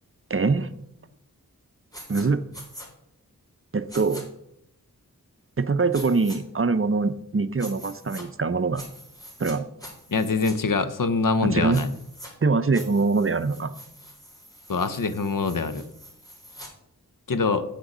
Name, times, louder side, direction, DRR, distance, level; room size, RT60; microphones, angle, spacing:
voice 1, 0.3-0.7 2.1-2.4 3.7-4.3 5.6-8.8 9.4-9.6 11.4-11.8 12.4-13.7, right 4 dB, 40° right, 12 dB, 0.6 m, -23 dB
sound 1, 1.9-2.2 2.5-2.9 3.9-4.2 5.9-6.4 7.6-8.2 8.7-9.5 9.8-10.5 11.7-12.3 12.7-16.7, equal, 10° left, 3.4 m, -44 dB
voice 2, 10.1-11.9 14.7-15.8 17.3-17.6, left 4 dB, 65° left, 12 dB, 0.8 m, -24 dB
8.2 x 6.4 x 6.1 m, 0.79 s
cardioid pair, 40°, 35 cm